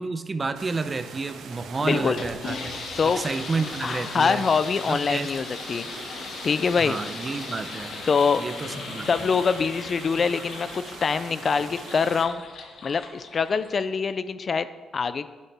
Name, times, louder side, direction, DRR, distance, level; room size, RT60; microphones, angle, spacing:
voice 1, 0.0-2.7 3.0-4.4 4.9-5.3 6.8-7.9 8.4-9.3, right 3 dB, 30° right, 11 dB, 0.6 m, -30 dB
sound 1, 0.5-12.3, right 5 dB, 80° right, 1.0 m, -42 dB
sound 2, 0.7-8.7 9.2-11.8 12.7-12.9, right 1 dB, 25° left, 2.2 m, -56 dB
sound 3, 1.5-14.0, left 4 dB, 70° left, 1.3 m, -38 dB
voice 2, 1.8-2.2 3.0-3.2 3.8-5.9 6.4-7.0 8.1-8.4 9.1-12.4 12.8-14.7 14.9-15.2, left 5 dB, 45° left, 13 dB, 0.4 m, -24 dB
11.5 x 9.3 x 3.5 m, 1.3 s
cardioid pair, 100°, 0 cm